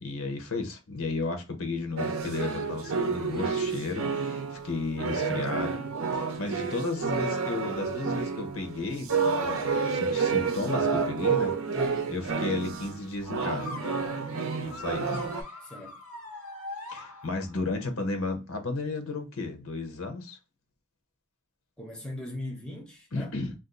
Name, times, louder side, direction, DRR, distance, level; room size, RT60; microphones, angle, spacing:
voice 1, 0.0-5.8 6.1-9.1 9.4-9.6 9.9-11.5 12.1-13.8 14.6-15.2 16.9-20.4 23.1-23.5, left 3 dB, 70° left, 0.8 m, -33 dB
sound 1, 2.0-13.0 13.3-15.4, right 5 dB, 70° right, 0.6 m, -29 dB
voice 2, 11.7-12.1 15.6-16.0 21.8-23.3, left 1 dB, 5° left, 0.6 m, -38 dB
sound 2, 13.6-17.7, left 2 dB, 85° left, 1.2 m, -42 dB
2.6 x 2.4 x 3.7 m
head